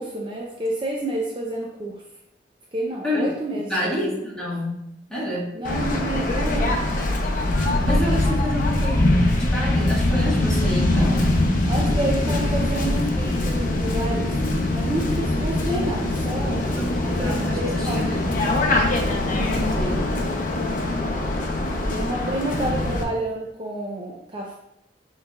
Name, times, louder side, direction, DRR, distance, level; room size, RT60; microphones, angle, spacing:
voice 1, 0.0-2.0 2.7-4.4 5.5-6.8 11.7-16.6 17.0-18.3 21.8-24.6, right 1 dB, 30° right, -2 dB, 0.5 m, -29 dB
voice 2, 3.6-5.5 7.5-11.4 11.8-12.3 16.8-18.2 19.3-20.0, left 1 dB, 5° left, -7 dB, 1.4 m, -29 dB
Waves surf, 5.6-23.0, left 1 dB, 50° left, 0.7 m, -22 dB
6.6 x 3.2 x 2.3 m, 0.81 s
head